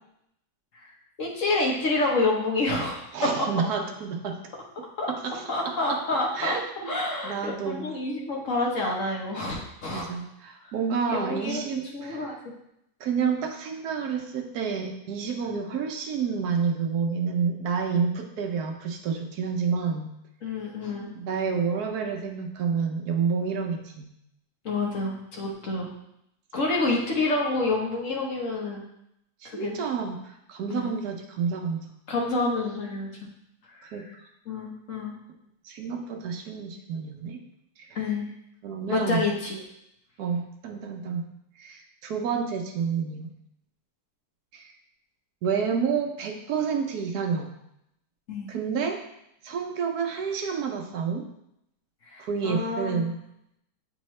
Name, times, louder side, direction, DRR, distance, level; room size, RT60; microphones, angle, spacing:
voice 1, 0.7-3.3 5.0-5.1 5.5-6.6 6.9-10.1 10.6-10.7 11.1-11.6 11.9-12.3 15.4-15.6 20.4-21.1 24.6-25.9 26.5-28.8 29.4-29.8 30.7-30.9 32.1-33.1 33.7-34.1 34.5-35.1 37.9-38.3 38.9-39.6 48.3-48.5 52.1-53.1, left 2 dB, 55° left, -1 dB, 1.2 m, -28 dB
voice 2, 3.1-4.4 5.1-6.0 6.3-7.0 7.2-7.8 9.9-12.3 13.0-20.1 21.1-24.1 29.4-31.9 33.8-34.3 35.6-37.4 37.8-38.0 38.6-39.2 40.2-41.3 41.6-43.3 44.5-44.7 45.4-47.5 48.5-49.0 49.4-51.3 52.2-53.1, right 6 dB, 75° right, 4 dB, 1.2 m, -29 dB
8.6 x 3.6 x 3.1 m, 0.80 s
omnidirectional pair, 1.7 m